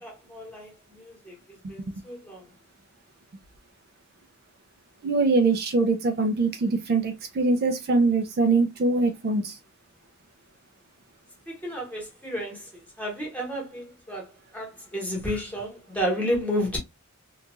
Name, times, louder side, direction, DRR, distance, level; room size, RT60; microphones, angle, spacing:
voice 1, 0.0-1.3 1.7-2.4 11.5-14.3 14.5-16.8, equal, 5° left, 1.0 m, -31 dB
voice 2, 5.0-9.6, right 3 dB, 45° right, 0.4 m, -23 dB
2.8 x 2.3 x 2.4 m
head